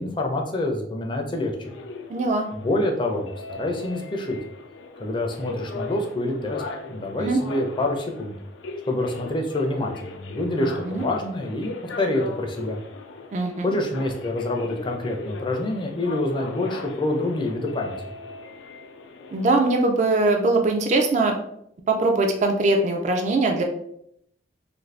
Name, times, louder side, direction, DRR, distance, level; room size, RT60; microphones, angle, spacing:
voice 1, 0.0-1.6 2.5-4.4 5.0-6.6 6.9-8.4 8.8-12.8 13.6-17.9, left 1 dB, 25° left, 2 dB, 0.4 m, -26 dB
sound 1, 1.6-19.6, left 3 dB, 90° left, 0.4 m, -38 dB
voice 2, 2.1-2.5 7.2-7.4 10.6-11.0 13.3-13.7 19.3-21.3 21.9-23.6, right 2 dB, 40° right, 3 dB, 0.3 m, -21 dB
2.6 x 2.5 x 3.2 m, 0.73 s
head